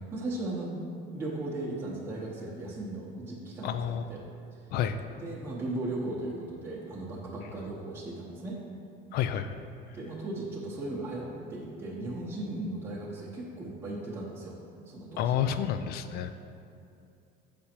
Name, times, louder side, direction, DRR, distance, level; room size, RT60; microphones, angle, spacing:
voice 1, 0.1-0.8 1.1-3.8 4.1-4.2 4.5-4.7 5.2-8.6 9.9-14.6 14.9-15.3, right 2 dB, 15° right, -6 dB, 1.0 m, -37 dB
voice 2, 3.6-4.1 4.7-5.0 9.1-9.6 15.2-16.3, left 9 dB, 60° left, 10 dB, 0.4 m, -29 dB
7.0 x 5.1 x 4.4 m, 2.5 s
cardioid pair, 145°, 19 cm